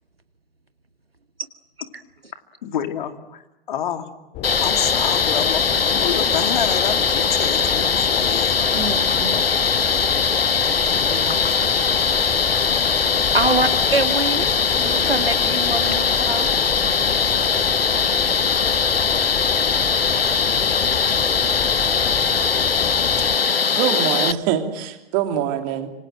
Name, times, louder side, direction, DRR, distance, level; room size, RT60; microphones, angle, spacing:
voice 1, 2.6-4.1 4.6-8.6 13.5-13.6, left 9 dB, 55° left, 8 dB, 2.6 m, -28 dB
sound 1, 4.3-23.4, left 9 dB, 30° left, 2.1 m, -32 dB
sound 2, 4.4-24.3, left 6 dB, 80° left, 0.8 m, -20 dB
voice 2, 8.7-9.4 9.8-9.9 11.1-11.4 13.1-16.5, right 2 dB, 90° right, 9 dB, 2.0 m, -25 dB
voice 3, 23.4-25.9, right 10 dB, 35° right, 6 dB, 3.1 m, -24 dB
26.0 x 25.5 x 7.7 m, 0.93 s
figure-of-eight pair, 110°, 29 cm